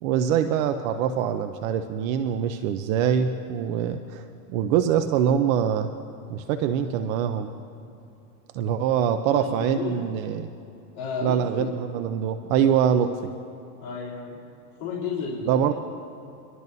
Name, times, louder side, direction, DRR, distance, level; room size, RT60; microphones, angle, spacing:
voice 1, 0.0-5.9 6.3-7.5 8.5-10.5 11.2-13.1 15.5-15.7, right 8 dB, 55° right, 8 dB, 0.8 m, -24 dB
voice 2, 9.3-10.0 10.9-11.7 13.8-14.4 14.8-15.7, left 5 dB, 50° left, -8 dB, 3.9 m, -32 dB
24.5 x 12.5 x 2.7 m, 2.8 s
supercardioid pair, 125°, 49 cm